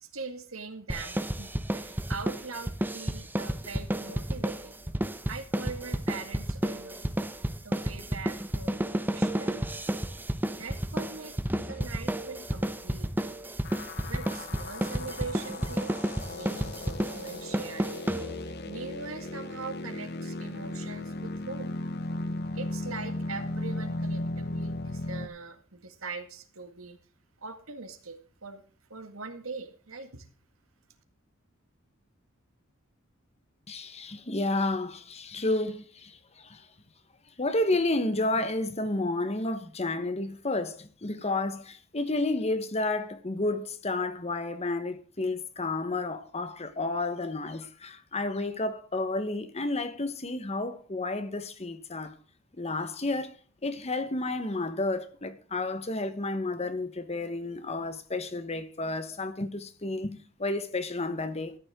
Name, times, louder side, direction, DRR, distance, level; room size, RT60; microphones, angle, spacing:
voice 1, 0.0-4.7 5.3-7.1 7.3-9.7 10.5-13.3 14.0-16.0 16.3-17.9 18.4-21.7 22.5-27.0 27.4-28.6 28.9-30.3, right 4 dB, 80° right, 1.9 m, -42 dB
sound 1, 0.9-18.7, right 1 dB, 10° right, 0.8 m, -31 dB
sound 2, 13.6-25.3, left 2 dB, 50° left, 1.0 m, -36 dB
voice 2, 33.7-36.7 37.4-52.1 52.5-53.4 53.6-61.6, left 2 dB, 30° left, 1.2 m, -31 dB
14.0 x 9.7 x 3.7 m
head